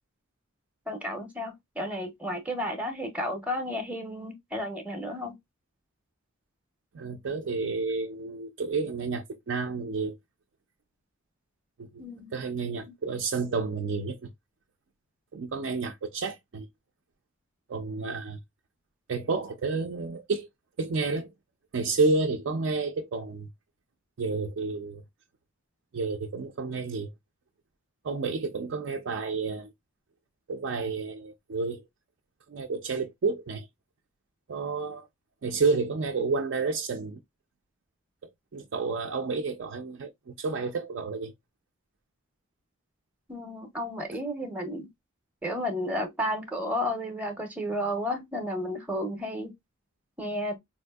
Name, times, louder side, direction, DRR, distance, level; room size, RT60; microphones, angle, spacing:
voice 1, 0.9-5.3 12.0-12.3 43.3-44.9 45.4-49.5 50.2-50.6, equal, 5° right, 0.6 m, -32 dB
voice 2, 6.9-10.2 11.8-12.0 12.3-14.3 15.3-16.7 17.7-18.4 19.1-20.5 20.8-21.3 21.7-23.5 24.2-25.0 25.9-27.1 28.0-29.7 30.5-31.8 32.5-33.7 34.5-35.1 35.4-37.2 38.2-41.3, right 4 dB, 65° right, 0.4 m, -30 dB
4.0 x 2.6 x 2.2 m
head